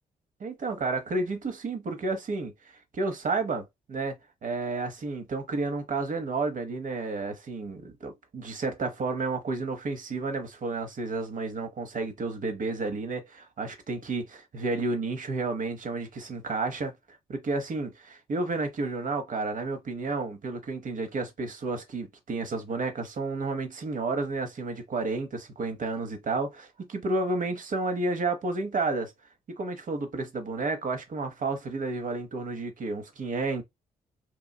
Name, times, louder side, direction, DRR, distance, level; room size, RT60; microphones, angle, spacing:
voice 1, 0.4-2.5 2.9-16.9 17.3-29.1 29.6-33.6, right 3 dB, 50° right, 0.8 m, -31 dB
3.0 x 2.3 x 2.2 m
hypercardioid pair, 45°, 17 cm